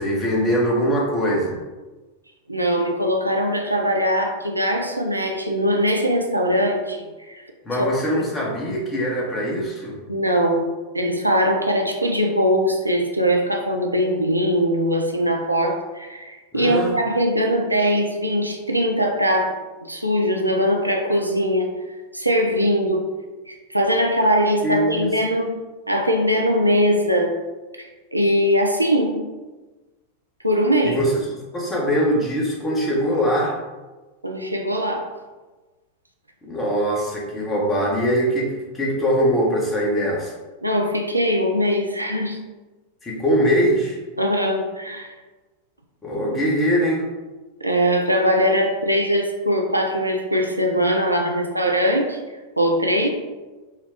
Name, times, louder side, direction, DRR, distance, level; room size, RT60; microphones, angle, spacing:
voice 1, 0.0-1.6 7.6-9.9 16.5-16.9 24.6-25.1 30.9-31.1 31.5-33.6 36.5-40.3 43.0-44.0 46.0-47.1, equal, 15° left, -3 dB, 1.1 m, -22 dB
voice 2, 2.5-7.4 7.8-7.9 8.1-8.3 10.1-19.5 19.8-21.7 22.1-23.0 23.5-25.5 25.9-27.4 27.8-29.2 30.4-31.0 34.2-35.1 40.6-42.4 44.2-45.1 47.6-52.2 52.6-53.1, equal, 85° right, 2 dB, 0.4 m, -21 dB
4.2 x 2.3 x 3.6 m, 1.2 s
figure-of-eight pair, 90°, 0 cm